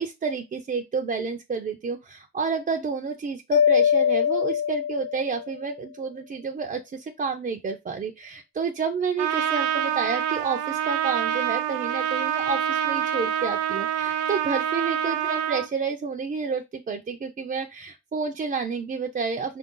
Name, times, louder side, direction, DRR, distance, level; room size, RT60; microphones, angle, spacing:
voice 1, 0.0-19.6, right 5 dB, 30° right, 0.5 m, -30 dB
Mallet percussion, 3.5-5.6, left 8 dB, 55° left, 0.5 m, -22 dB
Trumpet, 9.2-15.7, right 10 dB, 85° right, 0.6 m, -26 dB
4.4 x 2.6 x 3.7 m
cardioid pair, 90°, 30 cm